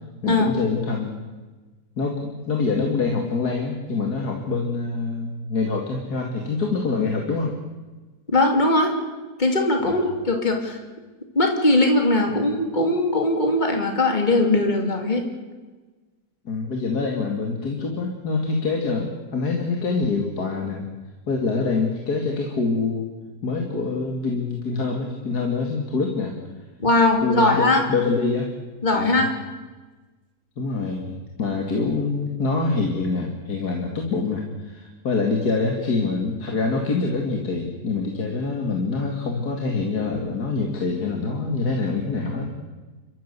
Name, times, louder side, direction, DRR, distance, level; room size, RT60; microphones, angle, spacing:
voice 1, 0.2-1.2 2.0-7.5 9.8-9.9 12.3-12.4 16.4-20.8 21.3-23.1 23.4-26.3 27.2-28.5 28.9-29.2 30.6-42.6, left 4 dB, 65° left, 1 dB, 2.8 m, -25 dB
voice 2, 8.3-8.9 9.4-10.8 11.3-15.2 26.8-27.8 28.8-29.3, left 2 dB, 25° left, 3 dB, 3.1 m, -20 dB
29.5 x 14.0 x 8.2 m, 1.3 s
omnidirectional pair, 1.8 m